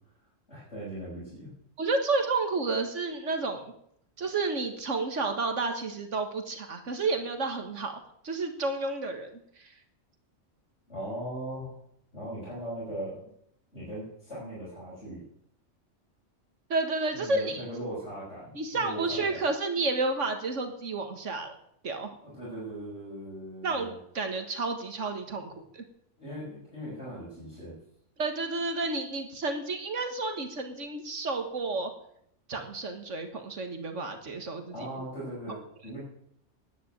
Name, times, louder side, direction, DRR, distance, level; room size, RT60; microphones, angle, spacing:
voice 1, 0.5-1.5 10.9-11.7 12.1-13.2 13.7-15.2 17.1-19.4 22.2-24.0 26.2-27.8 34.7-36.0, right 1 dB, 65° left, -8 dB, 6.5 m, -39 dB
voice 2, 1.8-3.7 4.2-9.3 9.6-9.7 16.7-17.6 18.5-21.6 21.8-22.1 23.6-25.8 28.2-31.9 32.5-34.9 35.5-35.6, right 3 dB, 75° right, 6 dB, 1.9 m, -31 dB
10.0 x 10.0 x 9.1 m, 0.71 s
omnidirectional pair, 1.3 m